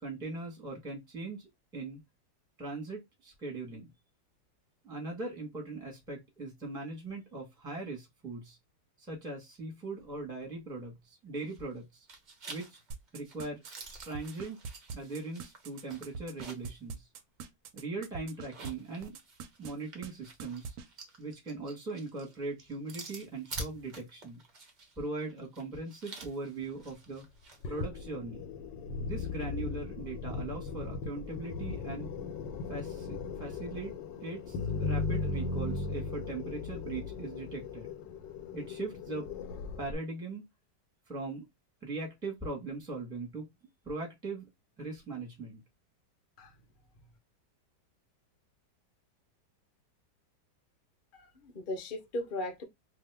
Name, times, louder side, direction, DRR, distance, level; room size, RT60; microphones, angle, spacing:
voice 1, 0.0-2.0 2.6-3.9 4.8-8.6 9.0-12.1 12.5-12.8 13.1-13.6 14.0-14.6 14.9-17.1 17.7-19.2 19.6-20.8 21.2-24.4 25.0-27.2 27.7-28.4 29.0-32.1 32.7-33.9 34.2-37.9 38.5-39.3 39.8-40.4 41.1-41.4 41.8-43.5 43.8-44.5 44.8-45.6, right 3 dB, 5° right, 0.9 m, -40 dB
sound 1, 11.4-11.8 12.1-16.8 17.2-17.3 18.3-27.6, right 2 dB, 50° right, 0.5 m, -48 dB
sound 2, 12.9-18.7 19.0-19.7 20.0-20.1 20.4-20.9, right 5 dB, 70° right, 1.0 m, -42 dB
sound 3, 27.6-40.0, left 4 dB, 90° left, 1.3 m, -37 dB
voice 2, 51.1-52.6, left 1 dB, 50° left, 0.6 m, -37 dB
2.8 x 2.4 x 3.3 m
omnidirectional pair, 1.9 m